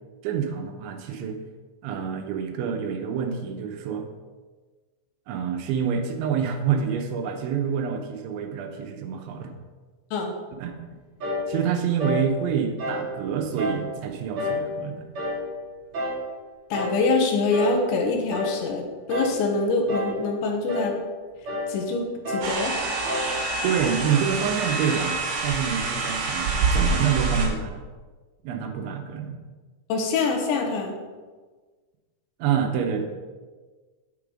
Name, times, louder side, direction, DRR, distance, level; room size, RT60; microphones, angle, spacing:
voice 1, 0.2-1.4 1.8-4.1 5.3-9.5 10.6-10.8 11.5-15.1 23.6-27.8 28.4-29.4 32.4-33.0, right 7 dB, 80° right, 5 dB, 3.1 m, -27 dB
sound 1, 11.2-11.5 12.0-12.3 12.8-13.1 13.6-13.9 14.4-14.7 15.1-15.5 15.9-16.2 16.7-17.0 17.5-17.8 18.3-18.6 19.1-19.4 19.9-20.2 20.7-20.9 21.4-21.7 22.2-22.6 23.0-23.3, left 1 dB, 30° right, 4.0 m, -29 dB
voice 2, 16.7-21.0 21.7-22.7 29.9-31.0, left 3 dB, 75° left, 2 dB, 3.5 m, -25 dB
sound 2, 22.4-27.5, right 3 dB, 55° right, 2.1 m, -26 dB
9.1 x 8.6 x 4.9 m, 1.4 s
omnidirectional pair, 5.5 m